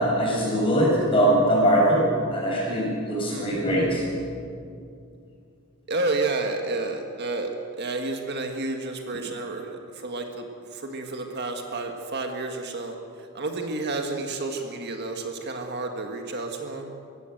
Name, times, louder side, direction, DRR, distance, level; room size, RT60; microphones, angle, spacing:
voice 1, 0.0-4.0, right 1 dB, 25° left, -3 dB, 7.2 m, -22 dB
voice 2, 5.9-7.5 7.8-10.5 10.7-12.9 13.3-16.9, right 2 dB, 50° right, 4 dB, 1.6 m, -30 dB
23.5 x 16.5 x 7.9 m, 2.4 s
head